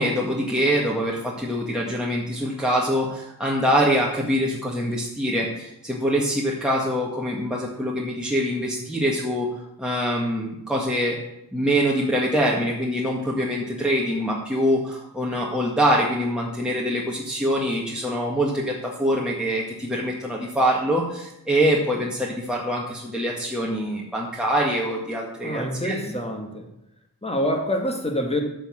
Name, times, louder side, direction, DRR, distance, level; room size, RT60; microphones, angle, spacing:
voice 1, 0.0-9.5 9.8-11.2 11.5-26.0, equal, ahead, -4 dB, 1.8 m, -24 dB
voice 2, 25.4-26.7 27.2-28.4, left 1 dB, 15° left, 3 dB, 2.1 m, -26 dB
8.0 x 6.3 x 7.3 m, 0.85 s
cardioid pair, 45°, 39 cm